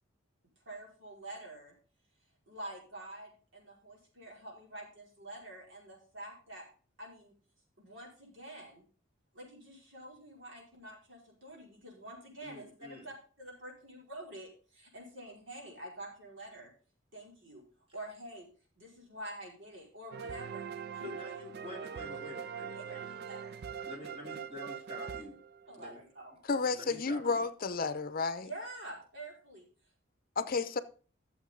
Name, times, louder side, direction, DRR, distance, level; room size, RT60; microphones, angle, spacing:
voice 1, 0.6-1.7 2.5-6.7 7.0-7.3 7.8-8.8 9.3-16.7 17.1-17.6 17.9-18.5 18.8-20.6 20.9-21.4 22.7-23.6 24.3-24.7 25.7-26.3 28.4-29.7, right 1 dB, 75° right, 5.2 m, -47 dB
voice 2, 12.4-13.1 20.9-23.1 23.8-25.3 25.8-26.0 26.7-27.4, left 2 dB, 30° right, 3.2 m, -47 dB
sound 1, 20.1-26.0, right 7 dB, 55° right, 0.4 m, -42 dB
voice 3, 26.5-28.5 30.4-30.8, left 4 dB, 50° left, 0.7 m, -31 dB
13.5 x 7.3 x 3.8 m
head